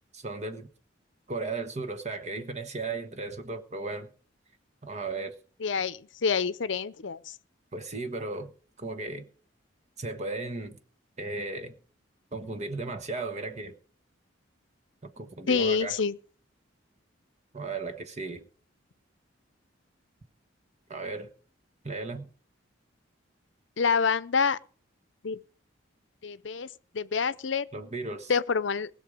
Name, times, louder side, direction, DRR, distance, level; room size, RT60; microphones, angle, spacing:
voice 1, 0.1-0.7 1.3-4.1 4.8-5.3 7.7-8.5 8.8-9.3 10.0-10.8 11.2-11.8 12.3-13.8 15.0-16.0 17.5-18.5 20.9-21.3 21.8-22.3 27.7-28.3, right 3 dB, 35° right, 1.2 m, -35 dB
voice 2, 5.6-7.4 15.5-16.2 23.8-24.6 25.2-25.4 26.2-26.7 26.9-27.7 28.3-28.9, left 5 dB, 65° left, 0.6 m, -27 dB
20.0 x 6.8 x 5.0 m
head